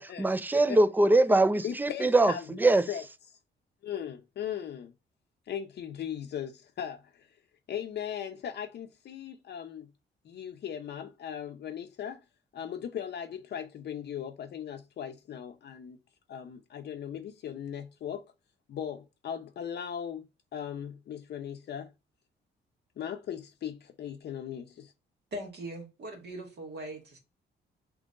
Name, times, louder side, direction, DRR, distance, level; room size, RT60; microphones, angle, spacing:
voice 1, 0.2-2.3 2.6-2.8, right 2 dB, 10° right, 0.3 m, -22 dB
voice 2, 1.6-3.0 3.3-3.4 3.8-4.9 5.5-7.3 7.7-9.9 10.2-12.2 12.5-16.0 16.3-18.2 18.7-20.2 20.5-21.9 23.0-24.9, left 9 dB, 55° left, 0.6 m, -38 dB
voice 3, 25.3-27.2, right 1 dB, 55° right, 1.8 m, -40 dB
3.7 x 3.0 x 3.7 m
cardioid pair, 90°, 20 cm